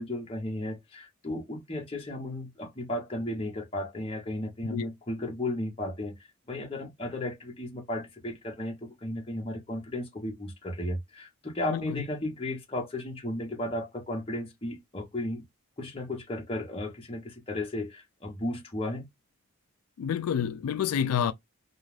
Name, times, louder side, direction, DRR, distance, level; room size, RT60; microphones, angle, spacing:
voice 1, 0.0-6.1 6.5-15.4 15.8-19.1, left 1 dB, 25° left, 0.8 m, -34 dB
voice 2, 11.7-12.1 20.0-21.3, left 8 dB, 85° left, 0.3 m, -28 dB
2.4 x 2.3 x 3.2 m
head